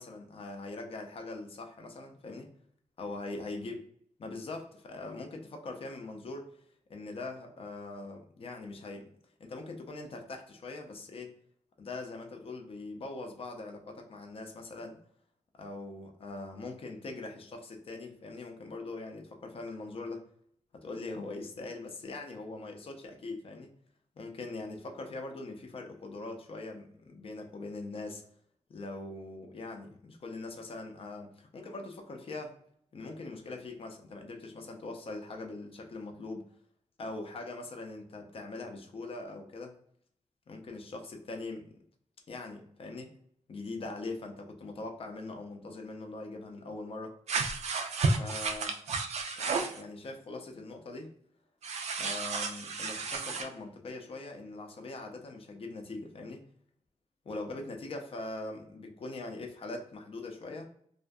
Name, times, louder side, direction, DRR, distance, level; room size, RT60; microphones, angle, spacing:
voice 1, 0.0-2.5 3.0-3.9 4.2-6.6 6.9-9.1 9.4-11.4 11.8-15.0 15.6-20.2 20.7-23.7 24.2-28.2 28.7-32.5 32.9-36.5 37.0-39.8 40.5-41.7 42.3-43.1 43.5-47.1 48.2-48.8 49.3-51.1 52.0-56.4 57.2-60.7, left 2 dB, 50° left, 3 dB, 0.5 m, -42 dB
sound 1, 47.3-49.8 51.6-53.5, right 4 dB, 70° right, 0.4 m, -32 dB
2.6 x 2.4 x 2.2 m, 0.65 s
wide cardioid pair, 150°, 12 cm